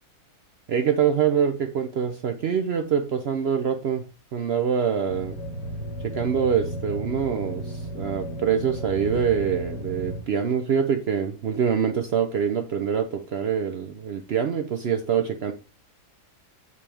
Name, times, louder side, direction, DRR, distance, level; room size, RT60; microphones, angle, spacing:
voice 1, 0.7-4.0 4.3-5.4 6.0-15.5, right 7 dB, 65° right, 6 dB, 0.6 m, -25 dB
sound 1, 5.1-10.2, equal, 60° left, 3.6 m, -34 dB
8.5 x 3.3 x 3.5 m, 0.35 s
omnidirectional pair, 1.7 m